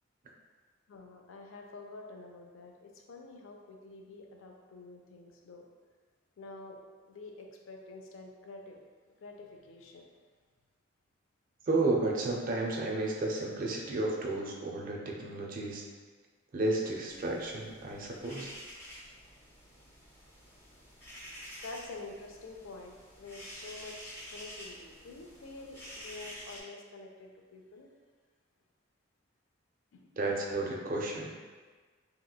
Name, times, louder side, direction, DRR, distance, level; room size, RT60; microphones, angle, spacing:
voice 1, 0.9-5.7 6.4-8.8 9.2-10.1 21.6-27.9 29.9-30.2, left 3 dB, 75° left, 2 dB, 0.4 m, -48 dB
voice 2, 11.7-15.8 16.5-18.5 30.2-31.3, right 2 dB, 45° right, -1 dB, 0.4 m, -32 dB
sound 1, 17.1-26.6, equal, 15° left, 0.6 m, -49 dB
2.9 x 2.9 x 2.3 m, 1.4 s
head